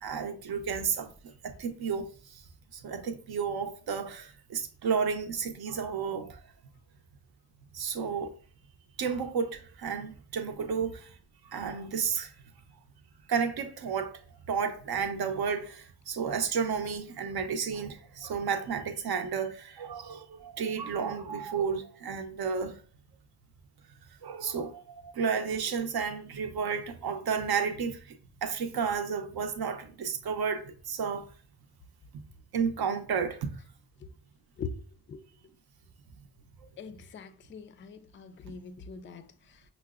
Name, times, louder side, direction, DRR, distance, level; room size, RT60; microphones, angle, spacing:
voice 1, 0.0-1.1 1.4-2.1 2.7-6.3 7.7-8.3 9.0-11.1 11.5-12.3 13.3-14.1 14.5-22.8 24.2-28.0 28.4-31.3 32.5-33.5, right 6 dB, 65° right, 0.7 m, -32 dB
voice 2, 34.6-35.3 36.8-39.6, left 5 dB, 30° left, 0.4 m, -43 dB
5.5 x 2.0 x 2.3 m
cardioid pair, 70°, 40 cm